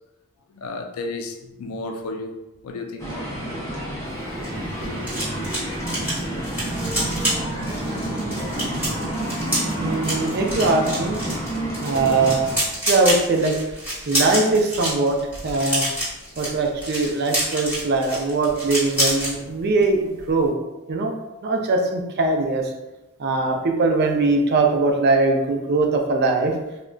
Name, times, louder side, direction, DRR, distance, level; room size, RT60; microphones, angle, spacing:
voice 1, 0.5-2.3 2.6-3.6 4.8-5.1, left 2 dB, 80° left, 4 dB, 0.4 m, -33 dB
sound 1, 3.0-12.6, right 1 dB, 15° left, 0.6 m, -29 dB
sound 2, 4.1-19.3 19.7-19.9 20.2-20.5, right 1 dB, 10° right, 1.1 m, -28 dB
voice 2, 9.8-11.3 11.8-12.4 12.9-13.6 14.1-15.2 15.4-15.8 16.4-20.5 20.9-21.1 21.4-22.7 23.2-26.5, right 3 dB, 50° right, 3 dB, 0.4 m, -21 dB
3.6 x 2.1 x 2.2 m, 0.99 s
head